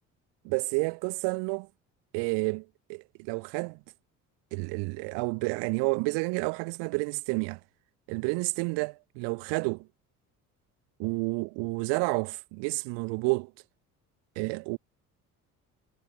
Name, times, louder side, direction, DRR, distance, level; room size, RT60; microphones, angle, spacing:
voice 1, 0.4-1.7 2.1-3.8 4.5-7.6 8.1-9.9 11.0-13.5 14.4-14.8, right 33 dB, 65° right, 5.4 m, -30 dB
figure-of-eight pair, 55°, 44 cm